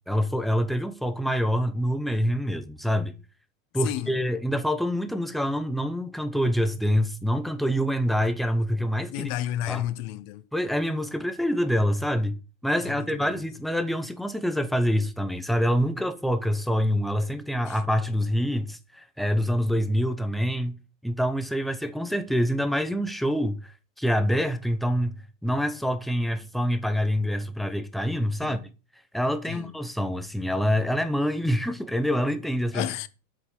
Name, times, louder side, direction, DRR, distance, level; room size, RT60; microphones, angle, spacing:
voice 1, 0.1-3.1 3.7-9.3 9.7-9.8 10.5-12.3 12.6-20.8 21.0-25.1 25.4-28.6 29.1-32.9, equal, ahead, 0.7 m, -26 dB
voice 2, 3.8-4.2 9.1-10.5 12.8-13.5 17.7-17.8 28.4-28.7 29.5-29.7 32.7-33.1, left 13 dB, 50° left, 1.0 m, -32 dB
8.3 x 5.3 x 7.1 m
supercardioid pair, 130°, 40 cm